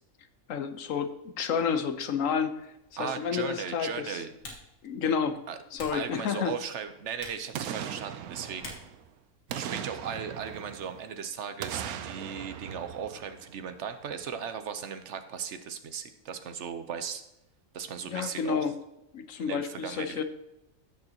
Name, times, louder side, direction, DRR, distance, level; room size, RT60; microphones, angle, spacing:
voice 1, 0.5-2.6 3.0-4.2 4.8-5.4 5.7-6.5 18.1-18.8 19.1-20.2, left 7 dB, 65° left, 9 dB, 1.2 m, -30 dB
Typing, 2.6-10.1, left 2 dB, 85° left, 2.3 m, -51 dB
voice 2, 3.0-4.3 5.5-5.6 5.9-8.8 9.5-17.2 17.7-18.7 19.4-20.2, right 7 dB, 60° right, 9 dB, 1.0 m, -37 dB
Boom, 7.5-9.1 9.5-11.1 11.6-13.8 14.2-14.3, right 9 dB, 85° right, 1.1 m, -39 dB
14.5 x 6.6 x 2.9 m, 0.89 s
omnidirectional pair, 1.5 m